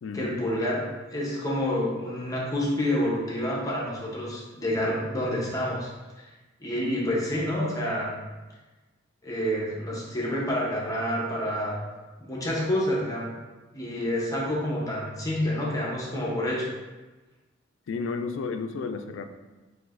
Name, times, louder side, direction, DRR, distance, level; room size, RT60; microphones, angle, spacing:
voice 1, 0.1-5.9 6.2-6.3 6.6-8.2 9.2-11.8 12.2-13.3 13.7-16.7, left 1 dB, 20° left, -4 dB, 0.7 m, -28 dB
voice 2, 17.9-19.3, left 4 dB, 75° left, 7 dB, 0.3 m, -32 dB
6.0 x 2.6 x 2.4 m, 1.2 s
head